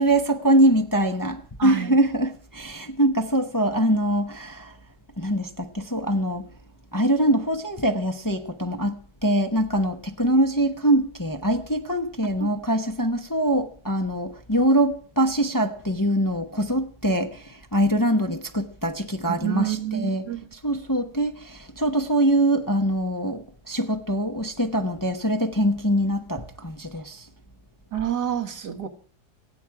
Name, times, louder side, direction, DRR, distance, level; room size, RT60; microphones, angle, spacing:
voice 1, 0.0-4.7 5.2-6.5 6.9-20.2 20.6-27.2, right 1 dB, 15° left, 0.9 m, -23 dB
voice 2, 1.6-2.0 12.4-12.5 19.3-20.4 27.9-28.9, right 11 dB, 80° right, 2.1 m, -28 dB
25.5 x 9.1 x 4.8 m
omnidirectional pair, 1.7 m